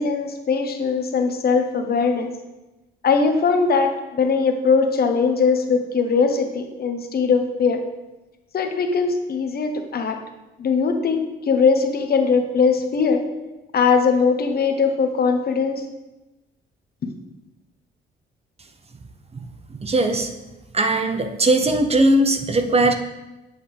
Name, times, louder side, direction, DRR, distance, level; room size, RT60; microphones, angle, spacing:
voice 1, 0.0-2.3 3.0-7.8 8.5-10.2 10.6-13.3 13.7-15.8 17.0-17.1, left 5 dB, 50° left, 6 dB, 1.0 m, -20 dB
voice 2, 19.8-20.3 20.7-23.0, right 2 dB, 30° right, 6 dB, 0.8 m, -19 dB
8.1 x 6.8 x 3.4 m, 1.0 s
cardioid pair, 90°, 20 cm